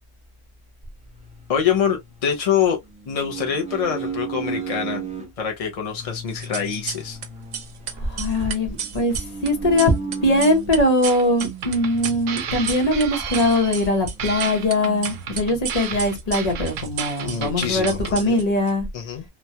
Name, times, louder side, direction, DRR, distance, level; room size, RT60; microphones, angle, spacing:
sound 1, 1.2-2.4 2.9-5.3 5.9-10.9 11.8-13.0 13.3-13.4 13.7-14.7, right 4 dB, 5° right, 0.6 m, -35 dB
voice 1, 1.5-2.8 3.1-5.1 5.4-7.2 17.2-18.4 18.9-19.2, left 8 dB, 55° left, 0.4 m, -25 dB
sound 2, 6.3-7.3 7.5-13.0 13.3-14.7 15.0-18.7, right 8 dB, 60° right, 0.4 m, -33 dB
voice 2, 8.0-9.9 10.2-18.9, left 1 dB, 35° left, 0.8 m, -21 dB
sound 3, 11.0-18.2, right 8 dB, 80° right, 1.0 m, -33 dB
3.0 x 2.2 x 2.7 m
omnidirectional pair, 1.3 m